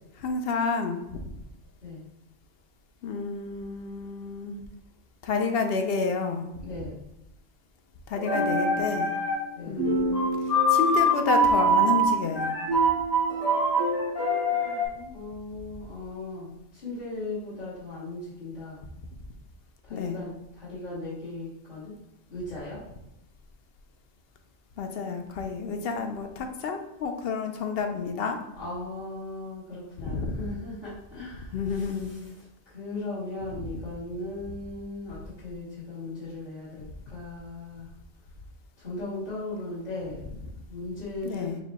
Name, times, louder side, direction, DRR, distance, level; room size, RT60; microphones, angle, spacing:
voice 1, 0.2-1.2 3.0-4.6 5.2-6.5 8.1-9.1 9.7-12.5 19.9-20.2 24.8-28.4 30.0-30.4 31.5-32.1 33.6-33.7 41.2-41.6, left 4 dB, 65° left, 5 dB, 0.7 m, -30 dB
voice 2, 6.6-7.0 9.5-9.9 14.5-18.8 19.8-21.9 22.3-22.8 28.6-37.9 38.8-40.3 40.7-41.5, left 2 dB, 40° left, -12 dB, 1.5 m, -38 dB
sound 1, 8.2-9.5 9.8-14.9, right 1 dB, 20° left, 1.3 m, -24 dB
4.7 x 2.1 x 4.0 m, 0.89 s
omnidirectional pair, 1.2 m